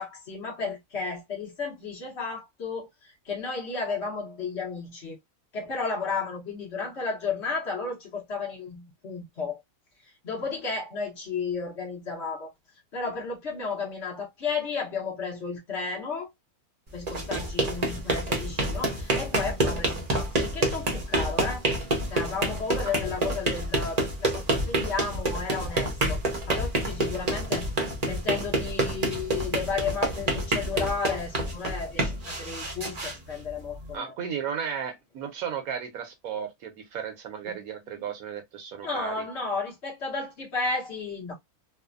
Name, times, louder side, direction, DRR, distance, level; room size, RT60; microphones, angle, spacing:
voice 1, 0.0-2.9 3.3-5.2 5.5-9.6 10.2-12.5 12.9-16.3 16.9-21.6 22.1-27.7 28.0-34.1 37.5-37.6 38.8-41.3, left 4 dB, 55° left, 1.1 m, -33 dB
sound 1, 16.9-33.9, right 1 dB, 35° right, 0.7 m, -28 dB
voice 2, 33.9-39.3, right 7 dB, 75° right, 1.2 m, -35 dB
3.2 x 2.1 x 2.4 m
omnidirectional pair, 1.5 m